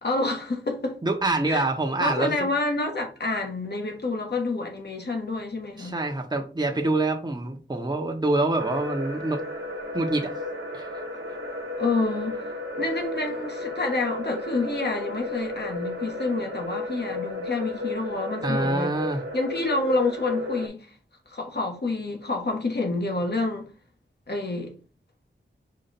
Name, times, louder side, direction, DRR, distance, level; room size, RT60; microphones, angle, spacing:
voice 1, 0.0-1.0 1.5-1.7 2.0-6.0 11.8-12.4 12.8-18.9 19.3-20.9 21.3-23.7 24.3-24.7, left 2 dB, 60° left, 1.3 m, -28 dB
voice 2, 1.0-2.5 5.8-9.4 9.9-10.3 10.7-11.0 18.4-19.2, right 2 dB, 20° right, 0.8 m, -26 dB
sound 1, 8.6-20.7, left 2 dB, 85° right, 0.9 m, -33 dB
5.3 x 2.4 x 4.1 m
wide cardioid pair, 55°, 19 cm